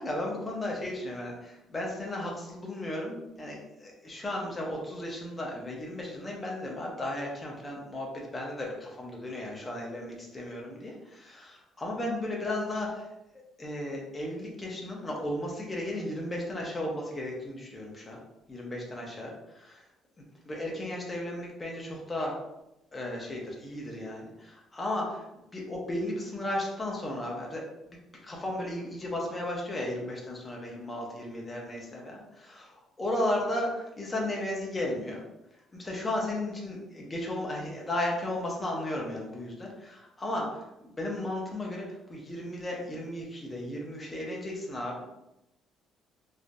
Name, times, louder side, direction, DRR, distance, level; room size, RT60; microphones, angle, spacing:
voice 1, 0.0-13.1 13.6-18.2 18.5-19.8 20.4-22.4 22.9-25.2 25.5-27.6 27.9-28.0 28.2-35.2 35.7-45.1, left 1 dB, 15° left, -2 dB, 0.5 m, -35 dB
3.2 x 2.5 x 2.5 m, 0.89 s
cardioid pair, 175°, 0 cm